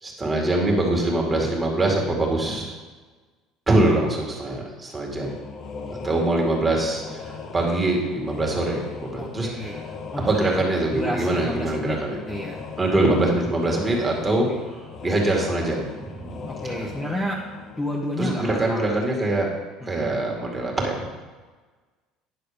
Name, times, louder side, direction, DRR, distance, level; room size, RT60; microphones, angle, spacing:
voice 1, 0.0-2.8 3.7-5.4 5.9-9.8 10.3-12.2 12.8-16.9 18.2-19.5 19.9-21.1, right 2 dB, 15° right, -1 dB, 2.2 m, -24 dB
sound 1, 5.2-18.7, left 5 dB, 40° left, 1.1 m, -39 dB
voice 2, 9.2-9.8 10.1-10.3 10.6-10.7 10.9-12.0 12.3-12.6 16.5-17.4 17.7-19.0 19.8-20.1, equal, 10° left, -3 dB, 1.0 m, -30 dB
10.0 x 6.5 x 5.1 m, 1.4 s
cardioid pair, 145°, 0 cm